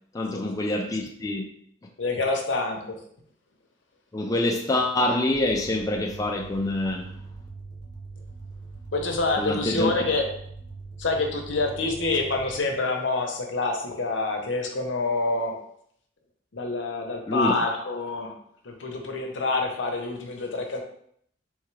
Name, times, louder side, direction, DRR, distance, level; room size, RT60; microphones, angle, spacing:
voice 1, 0.1-1.5 4.1-7.1 9.4-9.9 17.3-17.5, left 1 dB, 20° left, 0.4 m, -26 dB
voice 2, 2.0-3.0 8.9-10.3 11.0-15.6 16.5-18.3 18.6-20.8, left 3 dB, 75° left, 0.8 m, -27 dB
sound 1, 5.3-12.6, right 3 dB, 65° right, 0.9 m, -42 dB
3.5 x 3.5 x 3.2 m
head